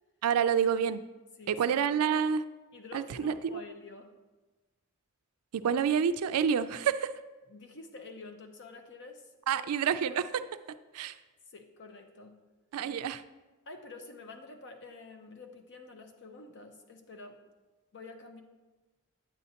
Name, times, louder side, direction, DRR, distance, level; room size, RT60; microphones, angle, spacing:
voice 1, 0.2-1.0 1.5-2.4 2.9-3.6 5.6-7.1 9.5-10.4 10.9-11.2 12.7-13.2, right 7 dB, 75° right, 12 dB, 0.4 m, -28 dB
voice 2, 1.4-1.8 2.7-4.1 7.5-9.7 11.5-12.4 13.7-17.4 17.9-18.4, left 3 dB, 55° left, 5 dB, 0.8 m, -48 dB
9.2 x 8.0 x 2.8 m, 1.2 s
head